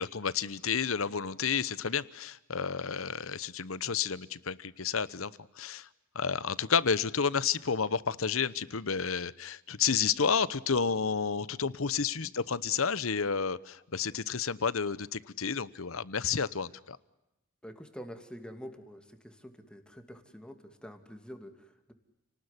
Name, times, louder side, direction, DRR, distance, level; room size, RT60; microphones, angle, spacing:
voice 1, 0.0-5.9 6.1-17.0, left 6 dB, 75° left, 17 dB, 1.0 m, -31 dB
voice 2, 17.6-21.9, equal, 5° left, 6 dB, 2.5 m, -47 dB
30.0 x 19.0 x 9.9 m, 0.93 s
head